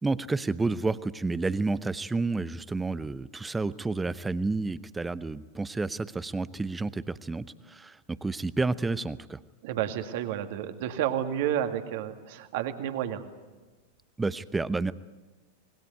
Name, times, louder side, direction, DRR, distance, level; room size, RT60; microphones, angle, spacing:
voice 1, 0.0-9.4 14.2-14.9, right 3 dB, 10° right, 17 dB, 0.8 m, -30 dB
voice 2, 9.6-13.3, right 10 dB, 50° right, 7 dB, 2.2 m, -30 dB
26.0 x 21.0 x 9.3 m, 1.2 s
figure-of-eight pair, 90°, 0 cm